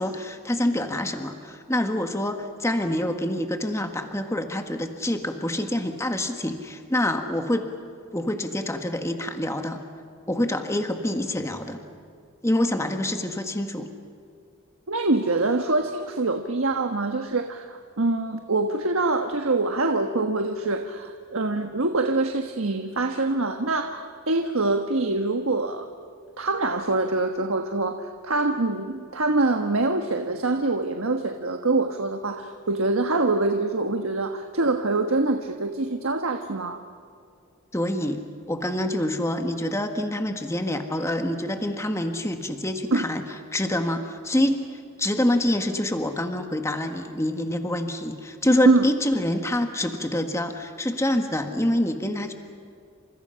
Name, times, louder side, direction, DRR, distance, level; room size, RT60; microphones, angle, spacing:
voice 1, 0.0-7.6 8.1-9.8 10.3-11.8 12.4-13.9 37.7-43.2 43.5-44.6 45.0-52.3, left 1 dB, 15° left, 6 dB, 1.6 m, -26 dB
voice 2, 14.9-25.9 26.4-36.8 42.9-43.1 48.6-48.8, right 2 dB, 75° right, 6 dB, 1.3 m, -25 dB
29.0 x 27.0 x 5.7 m, 2.3 s
head